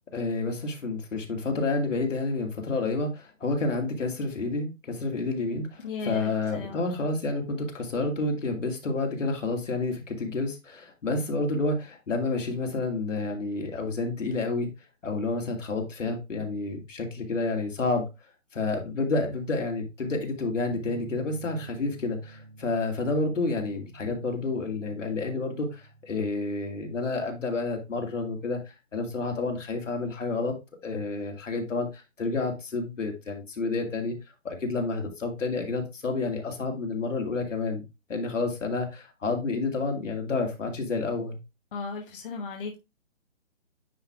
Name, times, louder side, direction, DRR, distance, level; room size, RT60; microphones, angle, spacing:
voice 1, 0.1-14.7 15.0-18.1 18.5-28.6 28.9-30.5 30.8-34.1 34.4-37.8 38.1-41.4, left 3 dB, 70° left, 2.3 m, -29 dB
voice 2, 5.8-6.9 41.7-42.8, left 4 dB, 45° left, 1.2 m, -36 dB
sound 1, 20.8-28.5, right 4 dB, 75° right, 4.6 m, -50 dB
9.6 x 3.3 x 3.5 m
hypercardioid pair, 150°, 39 cm